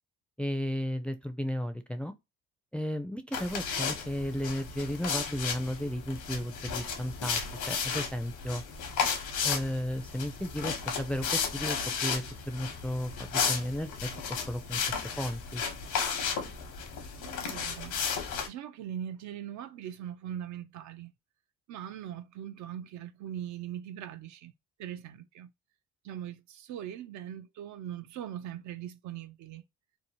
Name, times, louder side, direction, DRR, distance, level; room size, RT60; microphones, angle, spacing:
voice 1, 0.4-2.1 2.7-8.6 9.4-15.6, equal, 5° left, 0.3 m, -34 dB
sound 1, 3.3-18.5, left 6 dB, 80° left, 0.9 m, -34 dB
voice 2, 17.2-18.0 18.5-21.1 21.7-24.5 24.8-25.5 26.0-29.6, right 10 dB, 70° right, 0.4 m, -41 dB
2.7 x 2.0 x 2.9 m
cardioid pair, 90°, 30 cm